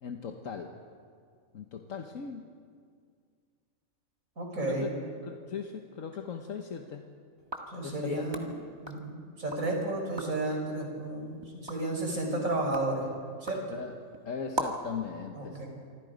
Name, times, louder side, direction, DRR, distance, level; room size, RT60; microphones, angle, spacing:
voice 1, 0.0-0.8 1.5-2.5 4.6-4.9 5.2-7.0 7.8-8.3 13.7-13.9 14.2-15.6, left 6 dB, 70° left, 4 dB, 1.5 m, -38 dB
voice 2, 4.4-4.9 7.7-8.4 8.8-13.1 13.4-13.8 15.3-15.7, right 2 dB, 75° right, 0 dB, 5.5 m, -32 dB
sound 1, 7.4-9.7 10.0-10.5 11.0-15.0, right 1 dB, 20° right, 1.8 m, -41 dB
27.0 x 25.0 x 5.2 m, 2.1 s
omnidirectional pair, 1.4 m